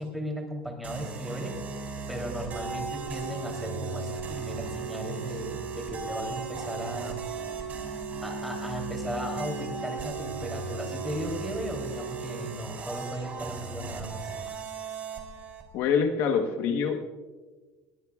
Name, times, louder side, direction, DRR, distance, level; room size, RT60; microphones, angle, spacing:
voice 1, 0.0-1.5 2.1-7.2 8.2-14.2, equal, ahead, 1 dB, 3.3 m, -36 dB
sound 1, 0.8-15.7, right 2 dB, 30° right, 3.4 m, -38 dB
Organ, 2.5-13.4 14.5-14.7, right 8 dB, 65° right, 0.7 m, -39 dB
voice 2, 15.7-17.0, left 6 dB, 60° left, 5 dB, 1.2 m, -25 dB
21.5 x 17.5 x 2.4 m, 1.3 s
cardioid pair, 145°, 5 cm